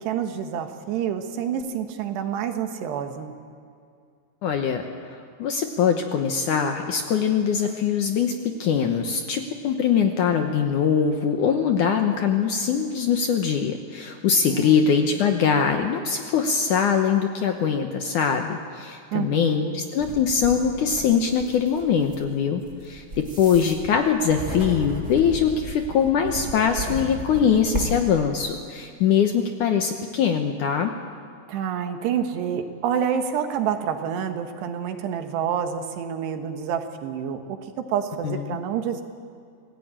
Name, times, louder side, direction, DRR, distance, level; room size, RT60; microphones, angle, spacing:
voice 1, 0.0-3.3 14.4-14.9 19.1-19.8 31.5-39.0, right 8 dB, 85° right, 6 dB, 3.5 m, -28 dB
voice 2, 4.4-4.8 5.1-30.9 38.2-38.6, left 7 dB, 70° left, 5 dB, 2.1 m, -22 dB
sound 1, 20.0-28.0, right 1 dB, 20° right, 2.6 m, -34 dB
26.5 x 18.0 x 8.9 m, 2.3 s
omnidirectional pair, 4.7 m